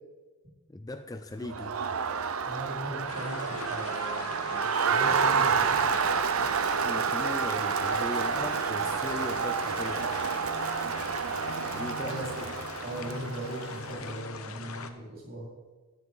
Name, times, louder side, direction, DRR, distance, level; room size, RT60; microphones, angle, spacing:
voice 1, 0.7-1.8 6.8-10.1 11.7-12.3, left 2 dB, 15° left, 7 dB, 0.4 m, -38 dB
Crowd, 1.4-14.0, right 6 dB, 75° right, 0.6 m, -29 dB
voice 2, 2.4-5.9 12.1-12.5 12.8-15.5, right 1 dB, 40° right, -5 dB, 4.7 m, -39 dB
sound 1, 3.1-14.9, left 4 dB, 80° left, 1.0 m, -41 dB
15.5 x 10.5 x 3.9 m, 1.3 s
head